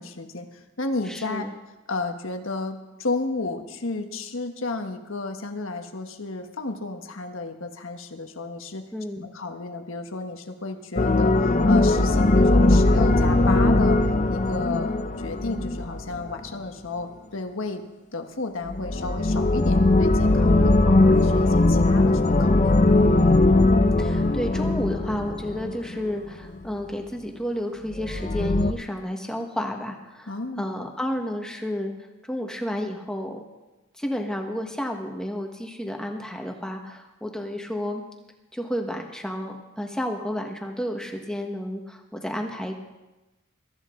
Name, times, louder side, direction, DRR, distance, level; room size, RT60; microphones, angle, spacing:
voice 1, 0.0-1.5 1.9-8.8 9.2-14.0 14.3-17.8 18.1-23.0 30.3-30.7, left 3 dB, 70° left, 5 dB, 1.5 m, -32 dB
voice 2, 1.1-1.5 8.9-9.2 20.4-20.7 23.5-31.9 32.2-33.4 34.0-38.0 38.5-42.7, equal, 5° left, 2 dB, 1.5 m, -31 dB
sound 1, 11.0-16.3 18.7-26.0 28.0-28.7, left 2 dB, 35° left, 0.7 m, -20 dB
23.0 x 13.5 x 3.9 m, 1.1 s
head